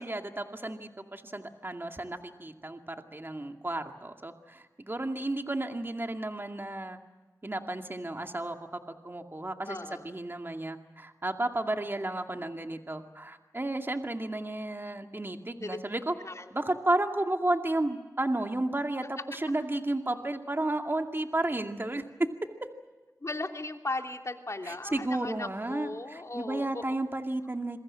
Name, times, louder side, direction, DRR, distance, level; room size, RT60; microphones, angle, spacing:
voice 1, 0.0-7.0 7.4-8.6 9.0-16.1 16.5-22.0 24.6-27.8, right 2 dB, 35° right, 5 dB, 2.2 m, -32 dB
voice 2, 9.7-10.2 15.6-15.8 16.2-16.5 23.2-26.8, left 2 dB, 50° left, 4 dB, 3.0 m, -37 dB
27.5 x 23.0 x 7.6 m, 1.2 s
wide cardioid pair, 45°, 7 cm